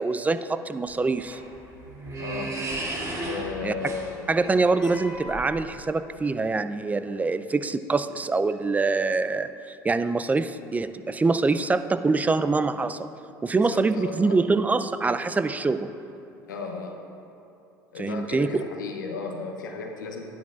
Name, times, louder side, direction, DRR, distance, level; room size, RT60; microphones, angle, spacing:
voice 1, 0.0-1.4 3.6-3.7 4.3-13.0 13.4-15.9 18.0-18.6, right 3 dB, 15° right, 11 dB, 0.4 m, -24 dB
sound 1, 0.9-5.8, right 2 dB, 30° right, 2.3 m, -35 dB
voice 2, 2.2-2.6 3.2-4.5 4.8-4.9 13.6-14.4 16.5-17.0 17.9-20.3, left 4 dB, 85° left, 2 dB, 0.7 m, -35 dB
12.0 x 10.0 x 2.4 m, 2.7 s
hypercardioid pair, 70°, 10 cm